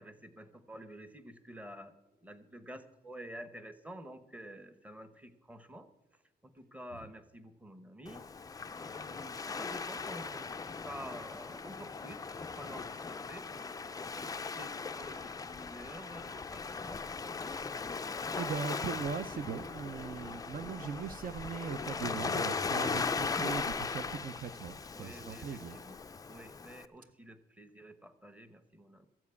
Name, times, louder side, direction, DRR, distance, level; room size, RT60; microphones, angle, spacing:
voice 1, 0.0-1.9 2.2-5.9 6.4-8.2 8.8-13.5 14.1-14.3 14.6-17.0 24.9-25.4 25.7-25.9 26.3-29.1, equal, 10° right, 0.9 m, -49 dB
Waves surf, 8.1-26.9, left 4 dB, 20° left, 0.4 m, -38 dB
voice 2, 18.4-25.8, right 6 dB, 50° right, 0.5 m, -40 dB
14.0 x 7.3 x 8.2 m
wide cardioid pair, 155°, 18 cm